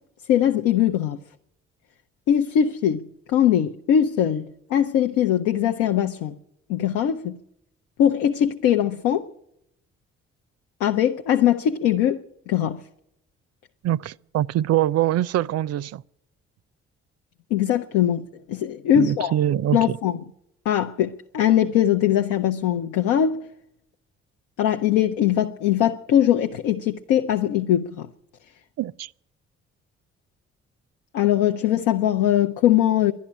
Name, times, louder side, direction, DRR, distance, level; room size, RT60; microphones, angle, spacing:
voice 1, 0.3-1.2 2.3-6.3 6.7-7.4 8.0-9.3 10.8-12.8 17.5-19.3 19.7-20.2 20.7-23.4 24.6-28.1 31.1-33.1, left 10 dB, 80° left, 0.6 m, -21 dB
voice 2, 13.8-16.0 18.9-20.0 28.8-29.1, right 13 dB, 55° right, 0.5 m, -23 dB
12.0 x 10.5 x 10.0 m
hypercardioid pair, 45°, 30 cm